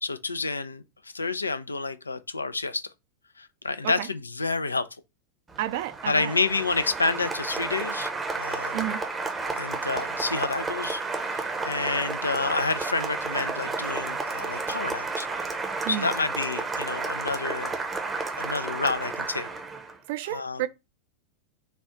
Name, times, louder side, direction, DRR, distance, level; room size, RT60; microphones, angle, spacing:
voice 1, 0.0-2.9 3.4-4.9 6.1-8.1 8.4-8.8 9.6-15.3 15.9-17.7 18.4-19.5 20.2-20.6, left 3 dB, 80° left, 0.3 m, -29 dB
Applause, 5.5-20.0, right 3 dB, 15° right, 0.7 m, -32 dB
voice 2, 5.6-6.3 8.7-9.0 15.8-16.1 20.1-20.7, right 14 dB, 50° right, 0.4 m, -31 dB
4.0 x 2.3 x 4.2 m
figure-of-eight pair, 90°, 0 cm